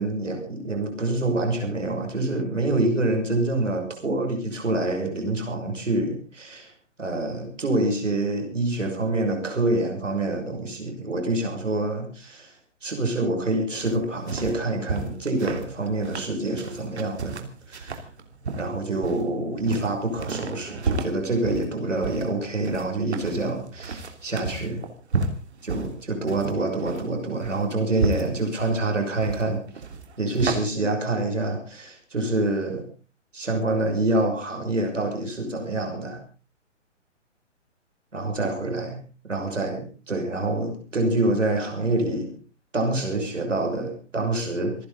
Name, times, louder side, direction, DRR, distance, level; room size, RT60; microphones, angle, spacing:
voice 1, 0.0-6.7 7.0-12.6 12.8-18.0 18.6-24.8 25.6-29.6 30.2-32.8 33.3-36.2 38.1-42.3 42.7-44.9, right 2 dB, 75° right, 2 dB, 6.3 m, -26 dB
sound 1, 13.8-30.5, right 4 dB, 60° right, 3.3 m, -32 dB
27.5 x 10.5 x 4.0 m, 0.37 s
figure-of-eight pair, 130°, 37 cm